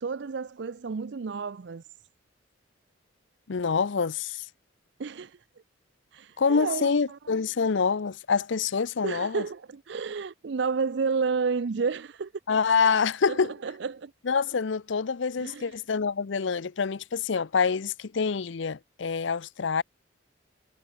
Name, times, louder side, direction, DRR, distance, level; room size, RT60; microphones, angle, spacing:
voice 1, 0.0-1.9 5.0-5.4 6.1-7.2 9.0-12.3 13.3-14.1 15.4-15.8, right 5 dB, 60° right, 0.5 m, -31 dB
voice 2, 3.5-4.5 6.4-9.4 12.5-13.5 14.2-19.8, left 5 dB, 70° left, 0.6 m, -26 dB
head